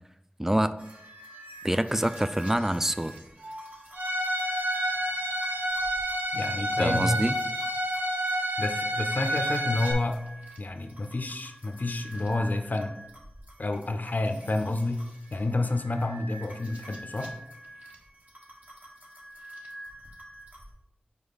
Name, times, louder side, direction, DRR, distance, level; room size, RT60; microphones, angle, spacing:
voice 1, 0.4-0.7 1.6-3.1 6.8-7.4, right 1 dB, 10° right, 12 dB, 0.3 m, -26 dB
sound 1, 0.8-20.7, right 1 dB, 50° right, 1.4 m, -47 dB
Bowed string instrument, 4.0-9.9, equal, 65° right, 0.9 m, -29 dB
voice 2, 6.3-7.3 8.6-10.2 10.6-13.0 13.6-15.0 15.3-17.3, left 2 dB, 55° left, 6 dB, 0.5 m, -29 dB
5.3 x 4.7 x 4.0 m, 0.86 s
wide cardioid pair, 60°, 3 cm